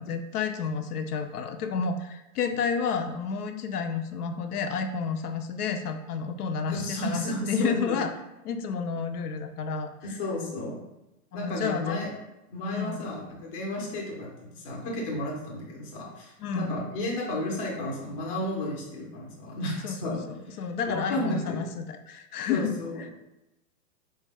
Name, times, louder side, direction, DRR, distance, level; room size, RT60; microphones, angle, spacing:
voice 1, 0.0-8.1 8.4-10.2 11.3-12.0 12.7-13.0 16.4-16.8 19.8-22.7 23.0-23.1, left 5 dB, 70° left, 6 dB, 0.5 m, -31 dB
voice 2, 6.7-8.0 10.0-10.8 11.3-12.1 12.5-20.2 20.9-21.6 22.5-23.1, left 1 dB, 25° left, -2 dB, 0.5 m, -33 dB
4.6 x 2.1 x 3.4 m, 0.93 s
hypercardioid pair, 155°, 47 cm